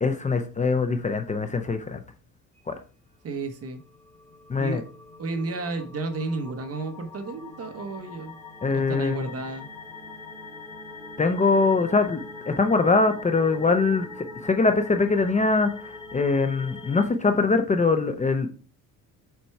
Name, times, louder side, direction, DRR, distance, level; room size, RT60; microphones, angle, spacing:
voice 1, 0.0-2.0 2.7-2.8 4.5-4.8 8.6-9.3 11.2-18.5, left 3 dB, 20° left, 7 dB, 0.6 m, -23 dB
voice 2, 3.2-3.8 4.6-4.8 5.2-8.3 8.7-9.7, right 3 dB, 45° right, 7 dB, 1.2 m, -32 dB
sound 1, 3.8-17.0, left 3 dB, 5° left, 3.2 m, -42 dB
7.1 x 4.4 x 4.6 m, 0.38 s
cardioid pair, 130°, 35 cm